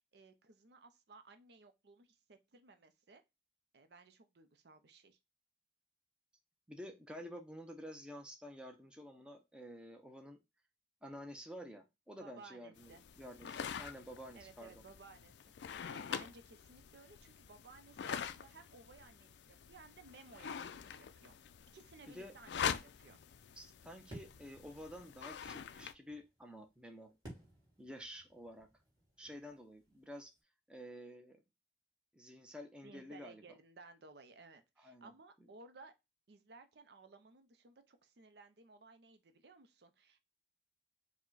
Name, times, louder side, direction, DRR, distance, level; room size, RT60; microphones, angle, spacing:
voice 1, 0.1-3.2 3.7-5.2 12.1-13.0 14.4-15.3 15.6-21.4 21.7-23.2 32.8-35.9 36.3-40.2, right 3 dB, 65° right, 0.5 m, -59 dB
voice 2, 6.7-10.4 11.0-14.7 22.1-22.3 23.6-27.1 27.8-28.7 29.2-30.3 30.7-31.4 32.1-33.4 34.8-35.1, equal, 5° right, 0.5 m, -50 dB
sound 1, 12.8-25.9, left 7 dB, 70° left, 0.4 m, -45 dB
sound 2, 24.1-30.4, right 1 dB, 20° right, 2.1 m, -58 dB
4.9 x 2.2 x 3.8 m
head